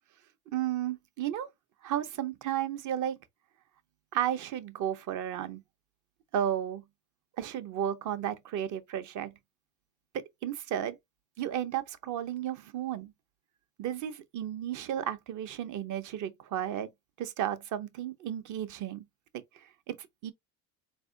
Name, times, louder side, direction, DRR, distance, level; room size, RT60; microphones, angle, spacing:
voice 1, 0.5-1.5 1.8-3.2 4.1-5.6 6.3-6.8 7.4-9.3 10.1-11.0 11.4-13.1 13.8-16.9 17.2-19.0 19.5-20.3, right 10 dB, 60° right, 0.9 m, -33 dB
4.3 x 3.3 x 2.7 m
supercardioid pair, 85°, 35 cm